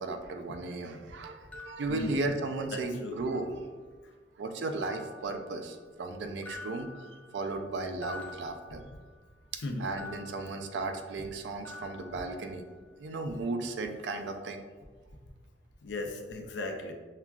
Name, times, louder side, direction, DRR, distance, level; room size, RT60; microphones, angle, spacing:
voice 1, 0.0-3.6 4.4-6.9 7.3-8.8 9.5-12.6 13.0-14.6, right 2 dB, 75° right, 6 dB, 0.4 m, -35 dB
sound 1, 1.5-2.8 3.2-4.0 4.8-6.1 6.4-9.4 10.0-11.4 11.6-13.0, left 3 dB, 10° left, 0.3 m, -50 dB
voice 2, 1.9-2.3 2.7-3.2 9.6-9.9 15.8-16.9, left 2 dB, 85° left, 3 dB, 0.5 m, -37 dB
5.6 x 2.3 x 2.3 m, 1.4 s
head